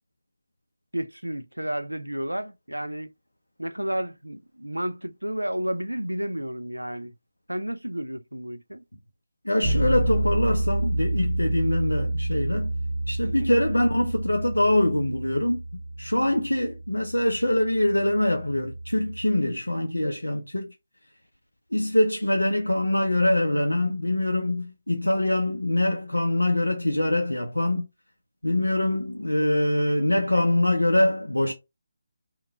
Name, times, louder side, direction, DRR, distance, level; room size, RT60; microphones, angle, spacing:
voice 1, 0.9-3.1 3.6-7.1 7.5-8.8 13.2-13.5, right 1 dB, 85° right, 0.4 m, -31 dB
voice 2, 9.4-12.7 13.1-15.6 16.0-20.7 21.7-27.9 28.4-31.5, left 1 dB, 80° left, 0.5 m, -24 dB
Bass guitar, 9.6-19.4, right 1 dB, ahead, 1.1 m, -29 dB
3.7 x 2.2 x 3.9 m
figure-of-eight pair, 150°, 0 cm